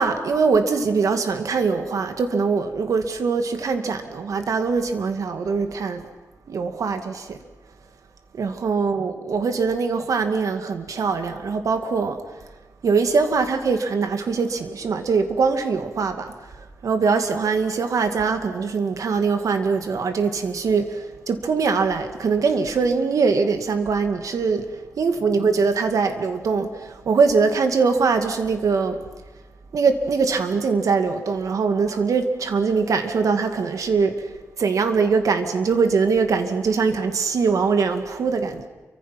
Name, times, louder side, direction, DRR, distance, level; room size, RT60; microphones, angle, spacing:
voice 1, 0.0-6.1 6.5-7.4 8.3-12.2 12.8-24.7 25.0-29.0 29.7-38.7, right 5 dB, 85° right, 2.2 m, -22 dB
28.5 x 24.5 x 5.9 m
wide cardioid pair, 125°, 6 cm